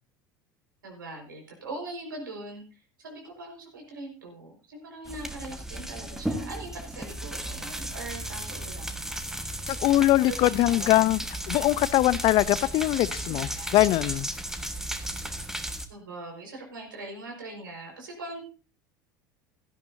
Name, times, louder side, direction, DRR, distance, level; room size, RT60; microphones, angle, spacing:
voice 1, 0.8-2.6 3.0-9.1 10.2-11.2 13.2-13.8 15.9-18.4, right 2 dB, 80° right, 5.1 m, -41 dB
sound 1, 5.1-15.9, right 1 dB, 5° right, 1.5 m, -35 dB
voice 2, 9.7-11.2 11.5-14.3, left 16 dB, 50° left, 0.6 m, -22 dB
16.5 x 12.5 x 2.7 m
figure-of-eight pair, 75°, 11 cm